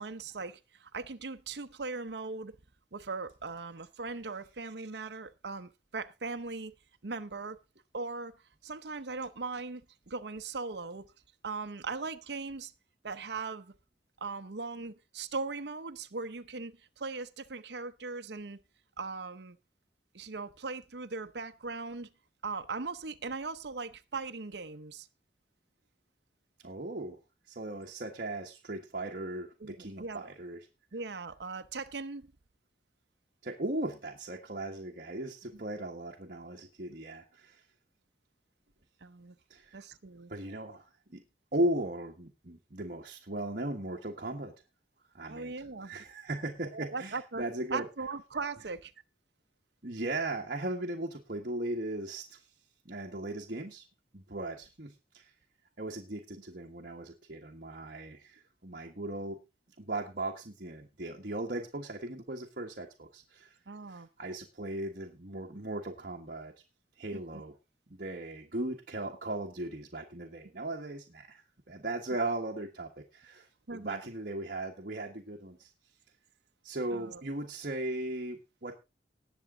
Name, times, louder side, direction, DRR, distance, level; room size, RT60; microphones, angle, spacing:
voice 1, 0.0-2.5 2.9-6.7 7.0-7.6 7.9-8.3 8.6-11.0 11.4-12.7 13.0-13.7 14.2-18.6 19.0-19.6 20.1-22.1 22.4-25.1 29.6-30.3 30.9-32.3 35.5-35.6 39.0-39.3 39.7-40.3 45.3-45.9 46.7-47.4 47.7-48.9 63.7-64.1 67.1-67.2 73.7-74.0 76.9-77.2, right 4 dB, 70° right, 0.8 m, -39 dB
voice 2, 26.6-27.2 27.5-30.7 33.4-37.7 39.5-39.8 40.3-41.2 41.5-44.5 45.1-47.9 49.8-52.5 52.8-53.8 54.1-55.3 55.8-59.4 59.8-63.6 63.9-66.5 67.0-67.6 67.9-75.7 76.6-78.7, right 1 dB, 55° right, 1.5 m, -37 dB
19.0 x 7.2 x 3.8 m
head